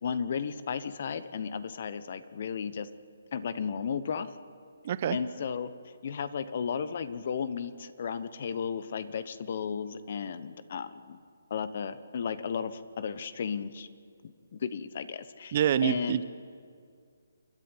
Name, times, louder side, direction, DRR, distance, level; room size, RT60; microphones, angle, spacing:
voice 1, 0.0-2.9 3.3-4.3 5.1-5.7 6.0-11.2 11.5-13.9 14.2-16.2, left 6 dB, 50° left, 14 dB, 1.1 m, -34 dB
voice 2, 4.8-5.2 15.5-16.2, right 10 dB, 40° right, 14 dB, 0.9 m, -26 dB
28.5 x 10.5 x 9.0 m, 2.2 s
figure-of-eight pair, 145°, 0 cm